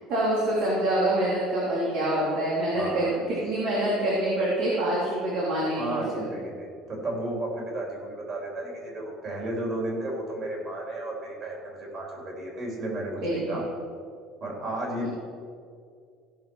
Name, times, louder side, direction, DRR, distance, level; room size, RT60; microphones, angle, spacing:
voice 1, 0.1-6.3 13.2-13.6 15.0-15.1, right 1 dB, 60° right, -6 dB, 3.1 m, -26 dB
voice 2, 2.7-3.1 5.8-13.7 14.4-15.1, right 1 dB, 35° right, -1 dB, 3.4 m, -33 dB
16.0 x 5.8 x 6.2 m, 2.2 s
cardioid pair, 165°, 0 cm